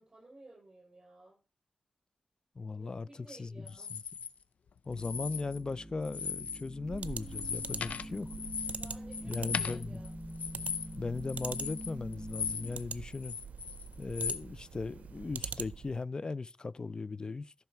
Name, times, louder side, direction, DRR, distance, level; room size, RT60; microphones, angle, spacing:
voice 1, 0.0-1.4 2.7-4.0 8.8-10.1, right 2 dB, 30° right, 6.4 m, -55 dB
voice 2, 2.6-3.6 4.9-8.3 9.3-10.0 11.0-13.4 14.0-17.5, left 3 dB, 35° left, 0.4 m, -38 dB
sound 1, 3.7-4.3 4.9-5.7 6.0-6.7 7.0-12.8 13.1-14.4, left 6 dB, 75° left, 0.6 m, -38 dB
sound 2, 4.9-12.8, equal, 10° right, 1.0 m, -46 dB
sound 3, 6.9-16.0, right 6 dB, 90° right, 0.5 m, -44 dB
14.0 x 5.8 x 4.5 m
wide cardioid pair, 110°, 2 cm